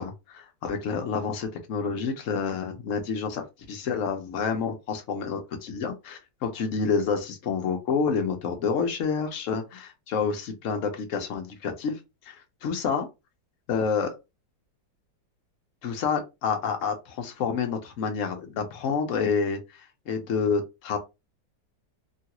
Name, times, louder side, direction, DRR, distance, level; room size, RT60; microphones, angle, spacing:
voice 1, 0.0-12.0 12.2-12.4 12.6-13.1 13.7-14.2 15.8-21.0, left 5 dB, 60° left, 0.8 m, -28 dB
3.1 x 2.4 x 2.8 m
omnidirectional pair, 2.0 m